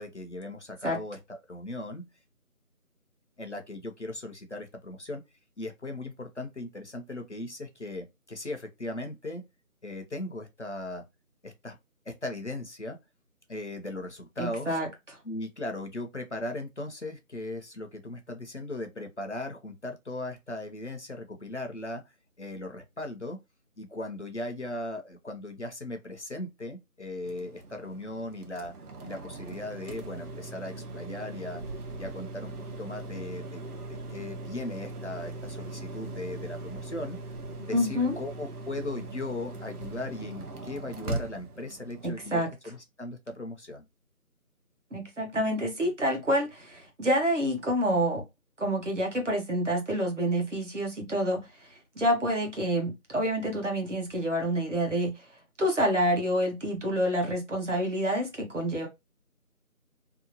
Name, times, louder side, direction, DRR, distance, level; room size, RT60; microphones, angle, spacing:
voice 1, 0.0-2.0 3.4-5.2 5.6-9.4 9.8-11.0 11.4-11.8 12.1-13.0 13.5-14.8 15.2-22.0 22.4-23.4 23.8-28.7 29.0-31.6 32.0-32.5 32.8-33.6 33.9-37.2 37.6-43.8, left 1 dB, 50° left, 0.6 m, -38 dB
voice 2, 14.4-14.9 37.7-38.1 42.0-42.5 44.9-48.2 48.6-51.7 52.0-55.1 55.6-58.9, equal, 55° right, 1.0 m, -28 dB
sound 1, 27.2-42.4, right 2 dB, 85° right, 0.8 m, -40 dB
2.8 x 2.2 x 2.6 m
figure-of-eight pair, 170°, 44 cm